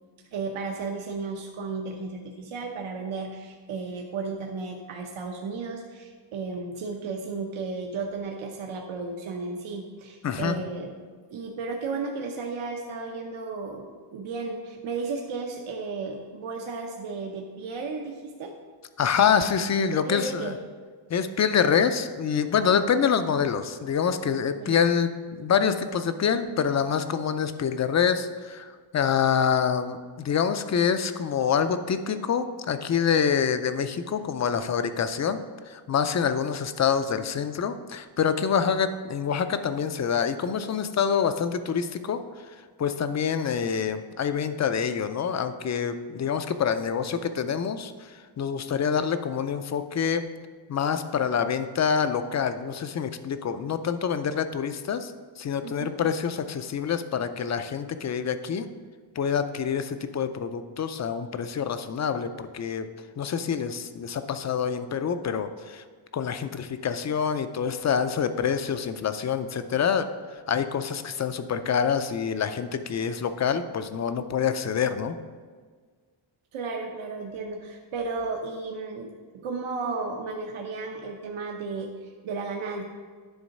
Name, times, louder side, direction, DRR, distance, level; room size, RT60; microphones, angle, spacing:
voice 1, 0.3-10.9 11.3-18.5 19.9-20.6 24.5-24.8 55.6-55.9 76.5-79.1 79.4-82.8, right 4 dB, 80° right, 1 dB, 0.9 m, -34 dB
voice 2, 10.2-10.6 19.0-20.5 21.1-25.1 25.4-35.4 35.7-42.2 42.8-50.3 50.7-55.1 55.4-58.7 59.2-62.9 63.2-65.8 66.1-70.1 70.5-75.1, left 7 dB, 40° left, 10 dB, 0.4 m, -26 dB
10.5 x 3.9 x 5.3 m, 1.6 s
wide cardioid pair, 170°, 47 cm